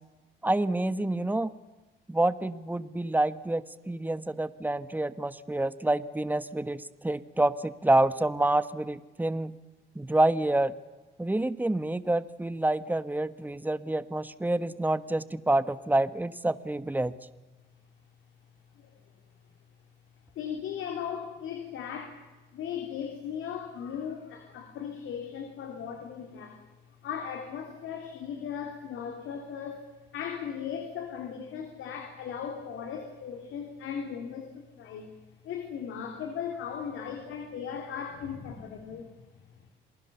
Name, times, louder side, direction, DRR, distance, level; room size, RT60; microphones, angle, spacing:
voice 1, 0.4-1.5 2.1-9.6 9.9-10.7 11.2-17.1, right 2 dB, 10° right, 14 dB, 1.2 m, -27 dB
voice 2, 20.3-22.2 22.5-26.7 27.0-29.9 30.1-35.2 35.4-39.3, left 7 dB, 85° left, 3 dB, 3.2 m, -37 dB
28.0 x 20.0 x 7.0 m, 1.2 s
cardioid pair, 90°, 20 cm